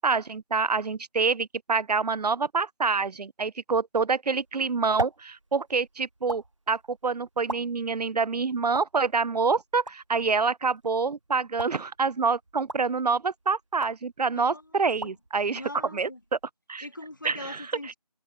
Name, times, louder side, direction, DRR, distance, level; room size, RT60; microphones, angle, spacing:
voice 1, 0.0-15.6 15.9-16.1 16.7-16.9 17.2-17.6, right 4 dB, 80° right, 0.4 m, -27 dB
sound 1, 4.3-16.5, right 2 dB, 50° right, 1.4 m, -41 dB
voice 2, 14.4-15.1 15.4-16.2 16.8-18.0, left 1 dB, 30° left, 1.4 m, -42 dB
figure-of-eight pair, 175°, 20 cm